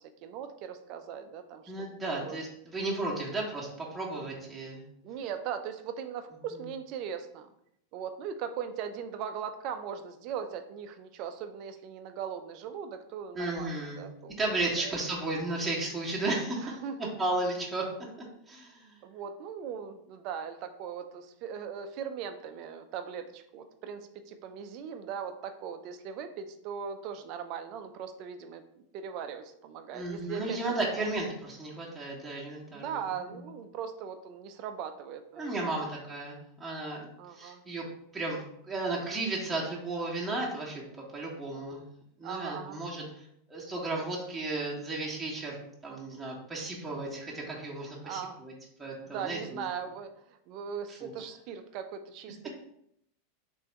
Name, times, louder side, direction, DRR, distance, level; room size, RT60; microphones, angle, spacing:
voice 1, 0.0-1.7 2.2-2.4 5.0-7.5 7.9-15.0 16.6-17.1 19.0-28.6 28.9-31.1 32.7-35.8 37.2-37.6 42.2-42.8 48.0-48.4 49.1-50.1 50.5-52.5, right 7 dB, 50° right, 8 dB, 0.5 m, -39 dB
voice 2, 1.7-4.8 13.3-14.1 14.4-17.8 18.5-18.9 29.9-33.5 35.4-37.1 37.3-37.8 38.1-40.8 41.1-41.8 42.2-43.2 43.5-45.6 45.8-48.5 48.8-49.6 50.9-51.1, right 2 dB, 10° right, -5 dB, 1.4 m, -34 dB
3.4 x 3.4 x 4.3 m, 0.75 s
hypercardioid pair, 95°, 0 cm